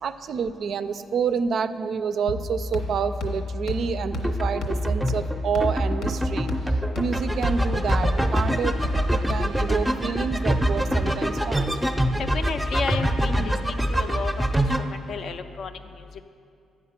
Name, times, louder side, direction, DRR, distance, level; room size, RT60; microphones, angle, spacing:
voice 1, 0.0-8.8 9.1-11.7, right 6 dB, 60° right, 11 dB, 0.3 m, -28 dB
sound 1, 2.3-9.8, left 2 dB, 80° left, 0.9 m, -31 dB
sound 2, 4.1-14.8, right 1 dB, ahead, 0.5 m, -25 dB
voice 2, 12.2-14.4 14.8-15.7, left 5 dB, 60° left, 9 dB, 0.4 m, -32 dB
9.2 x 4.7 x 5.8 m, 2.4 s
cardioid pair, 90°, 0 cm